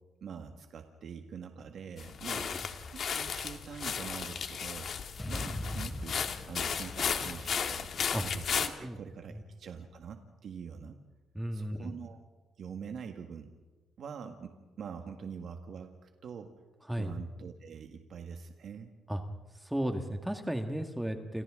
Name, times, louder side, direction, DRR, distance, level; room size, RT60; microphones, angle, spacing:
voice 1, 0.2-2.5 2.9-4.9 5.3-7.9 8.2-11.0 11.5-12.2 12.6-13.5 14.0-16.5 16.9-18.9, right 6 dB, 60° right, 4 dB, 1.6 m, -44 dB
sound 1, 2.0-8.7, left 7 dB, 55° left, 1.7 m, -35 dB
voice 2, 2.3-2.6 8.1-8.2 8.8-9.0 9.3-9.4 11.3-12.0 16.9-17.1 19.1-19.2 19.5-21.4, right 1 dB, 5° right, 5 dB, 1.8 m, -35 dB
sound 2, 5.2-9.4, left 2 dB, 15° left, 3.0 m, -42 dB
28.5 x 28.0 x 3.8 m, 1.2 s
cardioid pair, 90°, 0 cm